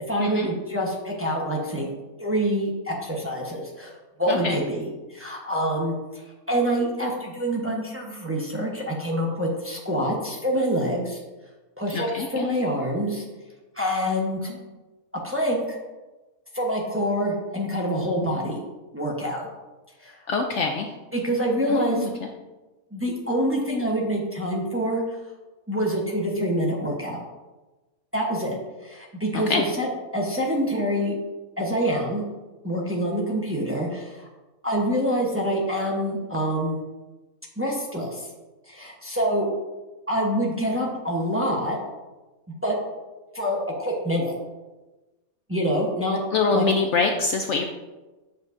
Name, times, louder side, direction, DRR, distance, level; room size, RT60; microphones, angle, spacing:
voice 1, 0.1-1.9 2.2-3.9 4.2-6.2 6.5-11.2 11.8-13.2 13.7-14.5 15.2-15.8 16.5-18.6 18.9-19.5 20.0-20.2 21.1-22.1 22.9-25.0 25.7-27.2 28.1-28.6 28.8-31.1 31.6-32.2 32.6-34.3 34.6-36.8 37.6-38.3 38.7-39.5 40.1-41.8 42.6-42.8 43.3-44.3 45.5-46.2 46.5-46.6, equal, 10° right, -2 dB, 0.9 m, -26 dB
voice 2, 4.3-4.6 11.9-12.5 20.3-20.9 21.7-22.1 29.3-29.6 46.3-47.6, left 4 dB, 65° left, 3 dB, 0.8 m, -24 dB
7.6 x 7.3 x 2.6 m, 1.2 s
omnidirectional pair, 1.6 m